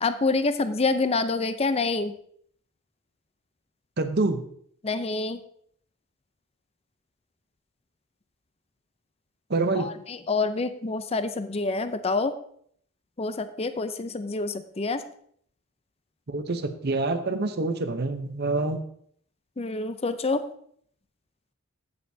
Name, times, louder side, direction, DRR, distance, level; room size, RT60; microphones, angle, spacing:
voice 1, 0.0-2.1 4.8-5.4 9.8-12.3 13.2-15.0 19.6-20.4, left 3 dB, 30° left, 10 dB, 0.5 m, -27 dB
voice 2, 4.0-4.4 9.5-9.9 16.3-18.8, right 3 dB, 45° right, 8 dB, 0.8 m, -26 dB
15.5 x 6.6 x 2.7 m, 0.64 s
head